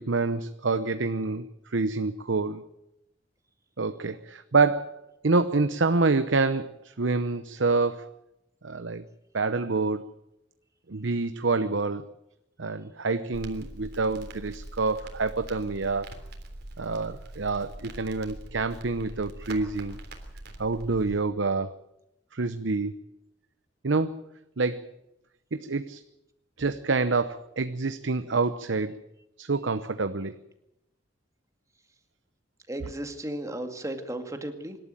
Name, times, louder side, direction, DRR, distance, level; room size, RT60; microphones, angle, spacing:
voice 1, 0.0-2.6 3.8-8.1 8.6-9.1 9.3-10.1 10.9-12.0 12.6-16.1 16.8-20.0 20.6-21.8 22.3-22.9 23.8-24.2 24.6-24.9 25.5-26.0 26.6-28.9 29.4-30.4, right 3 dB, 90° right, 11 dB, 0.9 m, -27 dB
Crackle, 13.3-21.2, right 1 dB, 60° right, 3.4 m, -43 dB
voice 2, 32.7-34.8, right 1 dB, 15° right, 6 dB, 2.2 m, -35 dB
25.5 x 12.5 x 9.1 m, 0.87 s
head